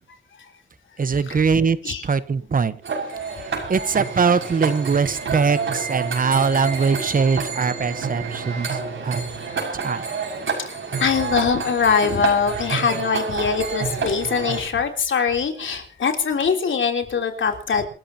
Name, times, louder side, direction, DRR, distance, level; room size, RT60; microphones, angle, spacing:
voice 1, 1.0-2.8 3.4-9.2 9.8-10.1, right 5 dB, 45° right, 14 dB, 1.1 m, -22 dB
sound 1, 2.8-14.6, right 5 dB, 80° right, 6.3 m, -28 dB
voice 2, 10.7-17.9, left 6 dB, 75° left, 4 dB, 3.4 m, -22 dB
27.5 x 13.5 x 2.9 m, 0.39 s
wide cardioid pair, 155°, 20 cm